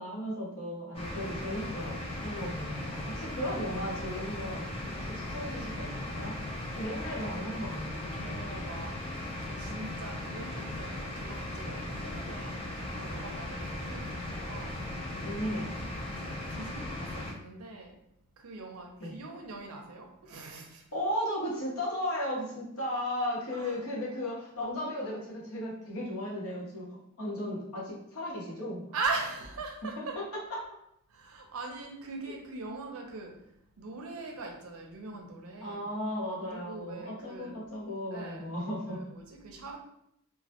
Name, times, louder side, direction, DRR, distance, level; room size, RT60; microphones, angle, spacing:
voice 1, 0.0-6.4 6.7-8.4 15.2-15.7 19.0-19.1 20.9-28.8 30.0-30.6 32.3-32.4 35.6-39.0, equal, 85° left, -5 dB, 0.8 m, -36 dB
sound 1, 0.9-17.3, left 1 dB, 25° left, 0.4 m, -37 dB
voice 2, 8.2-9.0 9.5-15.6 16.1-18.0 18.4-20.9 23.5-23.8 28.9-30.2 31.1-33.4 33.8-35.8 36.4-37.6 38.1-38.5 38.9-39.8, right 3 dB, 80° right, 3 dB, 0.5 m, -41 dB
2.1 x 2.1 x 2.7 m, 0.76 s
head